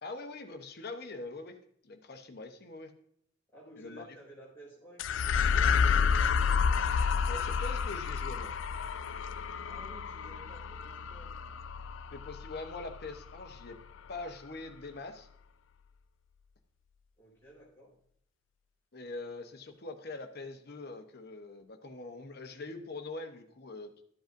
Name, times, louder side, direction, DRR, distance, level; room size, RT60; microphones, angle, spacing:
voice 1, 0.0-1.6 1.8-2.9 3.8-4.1 7.3-8.5 12.1-13.8 14.1-15.3 18.9-23.9, left 3 dB, 50° left, 7 dB, 0.9 m, -43 dB
voice 2, 3.5-6.3 9.6-11.3 17.2-17.9, right 1 dB, 10° left, -5 dB, 4.0 m, -54 dB
sound 1, 5.0-13.6, left 6 dB, 70° left, 0.4 m, -30 dB
13.0 x 7.8 x 2.6 m, 0.69 s
head